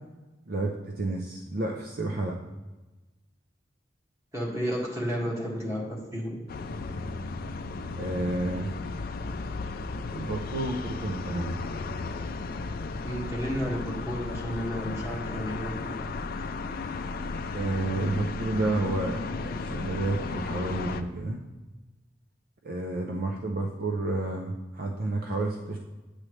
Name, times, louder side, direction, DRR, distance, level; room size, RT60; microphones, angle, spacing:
voice 1, 0.5-2.4 8.0-8.7 10.1-11.6 17.5-21.4 22.6-25.8, right 2 dB, 55° right, 2 dB, 0.6 m, -30 dB
voice 2, 4.3-6.4 7.9-8.0 13.0-16.0, equal, 15° right, -4 dB, 1.9 m, -32 dB
sound 1, 6.5-21.0, left 3 dB, 55° left, 0.4 m, -34 dB
8.7 x 6.3 x 3.2 m, 1.1 s
head